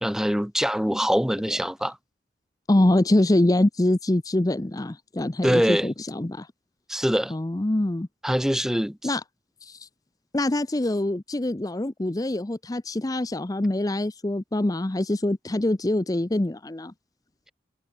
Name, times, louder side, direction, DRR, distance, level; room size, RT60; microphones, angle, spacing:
voice 1, 0.0-2.0 5.4-5.9 6.9-7.3 8.2-9.2, equal, 5° right, 1.0 m, -24 dB
voice 2, 2.7-6.5 7.3-8.1 9.0-9.2 9.6-9.9 10.3-16.9, left 1 dB, 20° left, 0.6 m, -24 dB
head